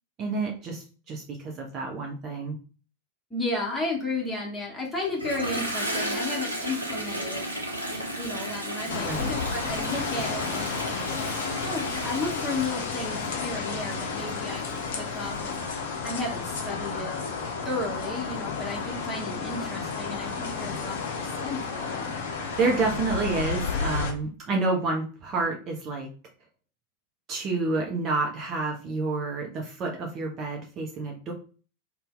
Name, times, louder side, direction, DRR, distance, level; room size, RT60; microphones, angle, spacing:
voice 1, 0.2-2.6 8.9-9.3 22.6-26.1 27.3-31.3, right 3 dB, 30° right, 0 dB, 0.6 m, -29 dB
voice 2, 3.3-7.4 7.9-11.3 11.6-17.1 17.6-22.1, left 2 dB, 10° left, -3 dB, 1.2 m, -33 dB
Toilet flush, 5.1-15.6, right 1 dB, 85° right, 0.7 m, -34 dB
sound 1, 8.9-24.1, left 5 dB, 55° left, 0.6 m, -32 dB
2.6 x 2.2 x 3.7 m, 0.38 s
figure-of-eight pair, 90°, 0 cm